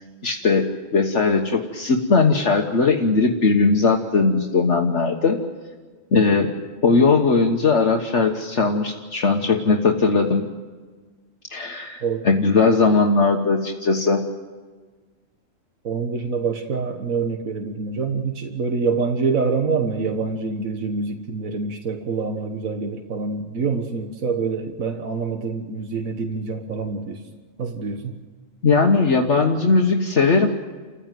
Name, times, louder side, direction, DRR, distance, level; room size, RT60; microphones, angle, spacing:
voice 1, 0.2-0.7 0.9-5.4 6.1-10.5 11.5-14.2 28.6-30.5, left 4 dB, 60° left, 2 dB, 1.7 m, -19 dB
voice 2, 15.8-27.2 27.6-28.2, right 4 dB, 80° right, 5 dB, 1.9 m, -26 dB
29.0 x 15.5 x 9.3 m, 1.4 s
omnidirectional pair, 1.4 m